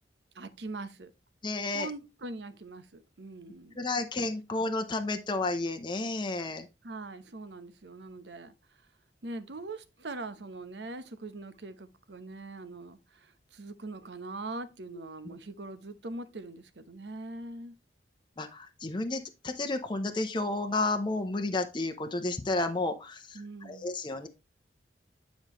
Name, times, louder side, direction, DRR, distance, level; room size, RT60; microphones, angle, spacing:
voice 1, 0.3-1.1 1.7-3.8 6.8-8.5 9.2-17.8 23.3-23.9, right 2 dB, 75° right, 0.9 m, -42 dB
voice 2, 1.4-1.9 3.8-6.7 18.4-23.4 23.7-24.3, left 2 dB, 25° left, 0.7 m, -31 dB
9.5 x 5.2 x 3.0 m
head